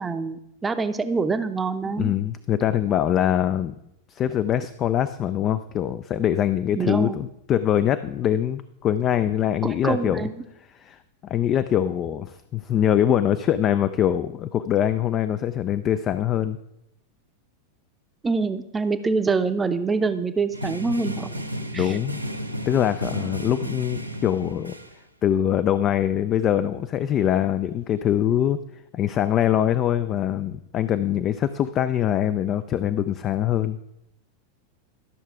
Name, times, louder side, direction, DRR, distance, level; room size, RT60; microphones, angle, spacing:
voice 1, 0.0-2.1 6.7-7.2 9.6-10.4 18.2-21.3 21.7-22.0, right 4 dB, 15° right, 10 dB, 0.7 m, -25 dB
voice 2, 2.0-3.7 4.1-10.2 10.8-16.6 21.8-22.2 22.7-24.7 25.2-28.6 28.9-33.8, left 10 dB, 30° left, 12 dB, 0.4 m, -23 dB
sound 1, 20.5-24.9, equal, 85° right, 0.8 m, -33 dB
12.5 x 6.4 x 4.7 m, 0.81 s
figure-of-eight pair, 90°, 0 cm